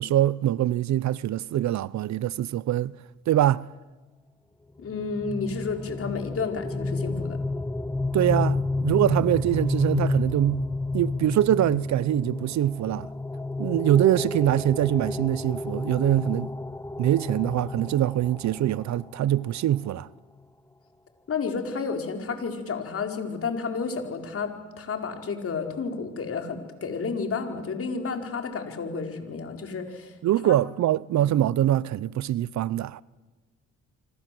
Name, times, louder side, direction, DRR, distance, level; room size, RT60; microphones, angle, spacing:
voice 1, 0.0-2.9 3.3-3.7 8.1-10.6 10.9-13.1 13.6-16.5 17.0-20.1 30.2-33.0, right 12 dB, 65° right, 0.7 m, -23 dB
voice 2, 4.8-7.4 21.3-30.1 30.4-30.6 31.2-31.3, left 5 dB, 50° left, 4.7 m, -31 dB
sound 1, 4.8-19.5, left 3 dB, 10° left, 0.9 m, -31 dB
26.0 x 26.0 x 7.8 m
cardioid pair, 90°, 30 cm